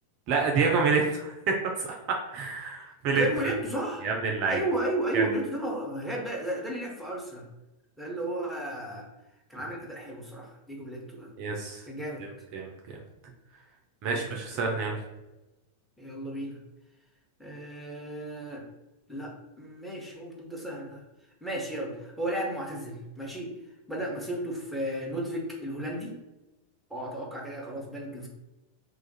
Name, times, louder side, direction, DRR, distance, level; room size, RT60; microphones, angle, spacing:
voice 1, 0.3-3.5 4.0-4.6 5.1-5.2 11.4-11.8 12.5-13.0 14.0-15.0, right 4 dB, 45° right, 1 dB, 0.5 m, -28 dB
voice 2, 3.1-4.1 4.5-7.5 8.0-9.1 9.5-11.3 11.8-12.2 14.0-14.2 14.5-14.8 16.0-16.6 17.4-18.6 19.1-21.0 21.4-23.5 23.9-26.2 26.9-28.3, right 1 dB, ahead, -2 dB, 0.9 m, -34 dB
2.5 x 2.4 x 3.9 m, 1.0 s
figure-of-eight pair, 90°, 0 cm